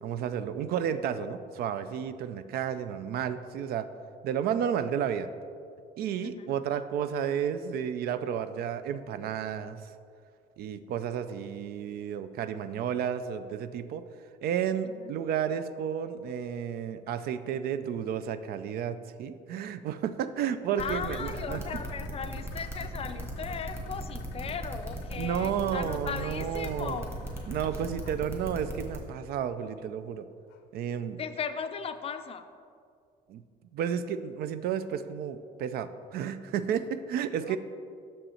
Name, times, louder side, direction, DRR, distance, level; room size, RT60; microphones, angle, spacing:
voice 1, 0.0-3.9 4.2-5.3 6.0-9.8 10.6-14.0 14.4-21.6 25.2-27.0 27.5-30.3 30.7-31.2 33.3-33.4 33.7-37.6, right 8 dB, 65° right, 12 dB, 0.4 m, -32 dB
voice 2, 6.2-6.6 14.8-15.2 20.8-27.2 31.2-32.4 37.5-37.6, left 6 dB, 35° left, 9 dB, 0.4 m, -37 dB
sound 1, 20.7-29.1 30.5-30.6 31.1-31.2 31.8-31.9, left 5 dB, 90° left, 0.6 m, -54 dB
sound 2, 20.8-29.0, right 1 dB, 15° right, 1.4 m, -37 dB
6.5 x 5.4 x 4.2 m, 2.3 s
cardioid pair, 110°, 17 cm